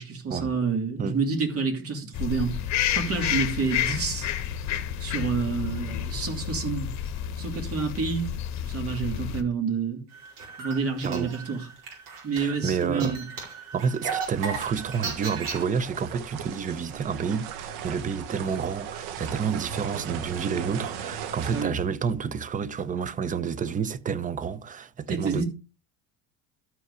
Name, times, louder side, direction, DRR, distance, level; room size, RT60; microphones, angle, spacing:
voice 1, 0.0-2.5 2.9-4.3 5.0-6.9 7.4-8.3 8.6-10.0 10.6-11.7 12.2-13.2 21.5-21.7 25.1-25.4, right 5 dB, 35° right, 3.1 m, -28 dB
sound 1, 2.1-9.4, left 10 dB, 45° left, 1.4 m, -30 dB
sound 2, 10.1-15.6, right 5 dB, 55° right, 4.9 m, -36 dB
voice 2, 12.4-13.2 13.7-25.4, right 6 dB, 20° right, 0.6 m, -29 dB
sound 3, 14.2-21.6, right 8 dB, 70° right, 1.4 m, -38 dB
12.5 x 5.3 x 5.0 m
supercardioid pair, 125°, 39 cm